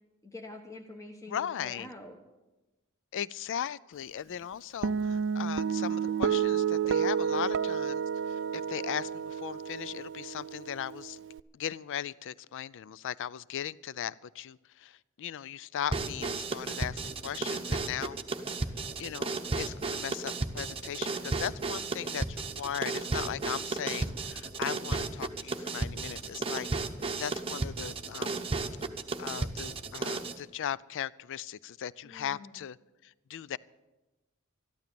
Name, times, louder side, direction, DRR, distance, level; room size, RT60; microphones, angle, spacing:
voice 1, 0.2-2.2 32.0-32.6, left 2 dB, 15° left, 2 dB, 1.0 m, -46 dB
voice 2, 1.3-1.9 3.1-11.2 11.5-18.2 19.0-26.7 27.2-28.4 29.2-32.8 33.0-33.6, left 9 dB, 60° left, 20 dB, 0.4 m, -38 dB
Guitar, 4.8-11.4, right 7 dB, 55° right, 0.4 m, -30 dB
sound 1, 15.9-30.4, right 3 dB, 25° right, 0.8 m, -34 dB
13.5 x 12.0 x 6.9 m, 1.1 s
head